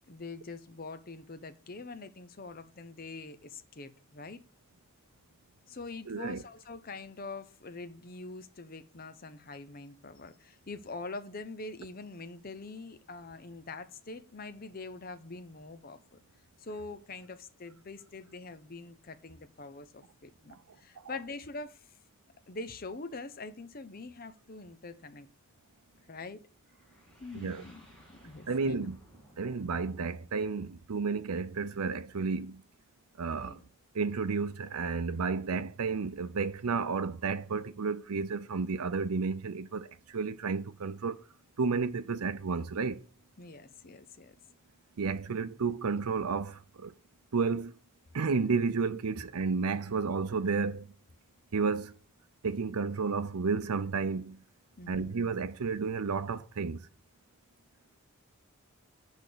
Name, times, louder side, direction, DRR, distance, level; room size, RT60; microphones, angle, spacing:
voice 1, 0.1-4.4 5.7-16.2 16.6-21.9 22.5-25.3 26.1-26.4 27.2-28.9 33.3-33.6 43.4-44.3 54.8-55.1, left 3 dB, 40° left, 0.7 m, -44 dB
voice 2, 6.1-6.4 20.5-20.6 27.3-27.6 28.5-29.0 29.4-32.6 33.2-33.6 33.9-41.2 41.6-43.0 45.0-46.9 47.3-47.8 48.1-50.9 51.5-51.9 52.4-54.4 54.9-56.9, right 4 dB, 90° right, 0.6 m, -32 dB
sound 1, 26.8-31.6, equal, 5° left, 2.5 m, -59 dB
6.3 x 5.1 x 6.7 m
head